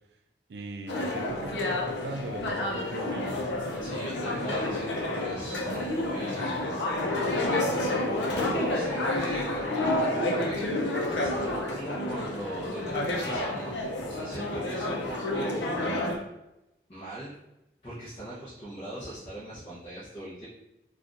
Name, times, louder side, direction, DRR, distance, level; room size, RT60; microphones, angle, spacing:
voice 1, 0.5-3.5, right 2 dB, 75° right, 6 dB, 0.4 m, -39 dB
sound 1, 0.9-16.2, left 1 dB, 85° left, 0.6 m, -29 dB
voice 2, 3.8-6.7 7.6-13.8 14.0-16.3 16.9-17.3 17.8-20.5, right 1 dB, 30° left, -10 dB, 0.8 m, -40 dB
4.2 x 2.4 x 2.5 m, 0.91 s
head